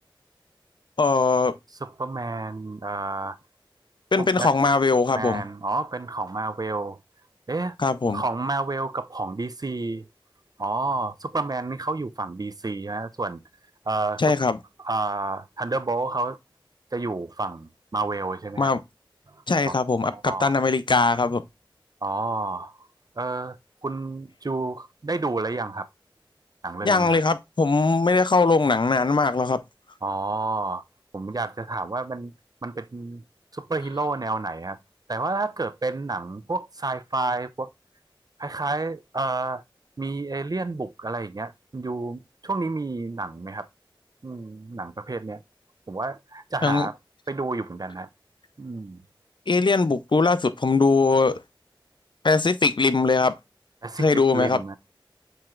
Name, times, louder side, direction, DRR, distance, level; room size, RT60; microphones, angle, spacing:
voice 1, 1.0-1.5 4.1-5.4 7.8-8.2 14.2-14.6 18.6-18.8 19.5-21.4 26.8-29.6 46.6-46.9 49.5-51.4 52.2-53.4 54.0-54.6, left 3 dB, 60° left, 0.5 m, -21 dB
voice 2, 1.8-3.4 4.2-4.5 5.1-7.0 7.5-7.8 8.1-10.1 10.6-13.4 13.9-14.3 14.8-16.4 16.9-18.7 19.3-19.7 20.0-20.5 22.0-22.9 23.2-23.6 23.8-25.9 26.6-27.2 30.0-30.8 31.1-32.3 32.6-33.2 33.5-34.8 35.1-37.7 38.4-39.6 40.0-43.7 44.2-45.4 45.9-47.0 47.3-48.1 48.6-49.0 53.8-54.8, right 3 dB, 45° right, 0.4 m, -30 dB
7.4 x 3.0 x 2.3 m
wide cardioid pair, 45°, 9 cm